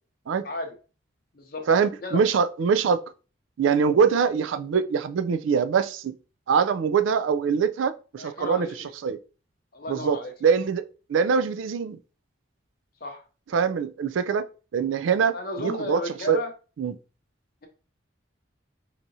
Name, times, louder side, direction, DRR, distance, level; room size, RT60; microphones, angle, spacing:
voice 1, 0.4-0.8 1.3-1.6 2.0-2.4 8.2-8.9 9.7-10.3 13.0-13.2 15.3-16.5, left 2 dB, 45° left, 0.6 m, -34 dB
voice 2, 1.7-3.0 3.6-6.1 6.5-8.7 9.0-9.2 9.9-10.8 11.1-12.0 13.5-14.4 14.7-16.0 16.3-16.4 16.8-16.9, right 6 dB, 75° right, 0.3 m, -23 dB
4.7 x 2.8 x 2.6 m
head